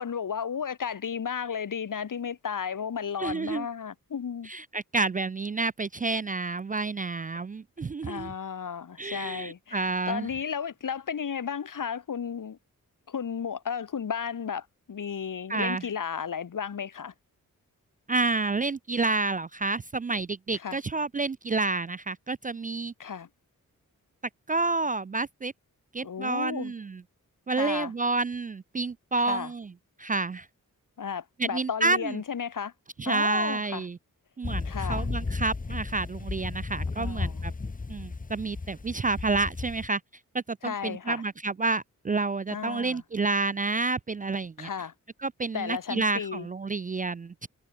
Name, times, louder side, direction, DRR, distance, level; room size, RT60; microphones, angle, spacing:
voice 1, 0.0-4.5 8.0-12.6 13.1-17.1 20.5-20.8 23.0-23.3 26.0-26.7 27.5-27.9 29.2-29.5 31.0-32.7 33.1-33.8 34.6-35.1 37.0-37.4 40.6-41.2 42.5-43.0 44.6-44.9 45.5-46.5, left 7 dB, 65° left, 1.8 m, -34 dB
voice 2, 3.2-3.7 4.5-8.3 9.0-10.3 15.5-15.8 18.1-22.9 24.5-25.5 25.9-27.0 27.5-29.7 30.0-30.5 31.4-32.1 33.0-34.0 34.4-37.5 37.9-40.0 40.3-44.7 45.2-47.5, right 3 dB, 25° right, 0.4 m, -29 dB
sound 1, 34.4-39.9, left 3 dB, 25° left, 1.0 m, -34 dB
cardioid pair, 50°, 34 cm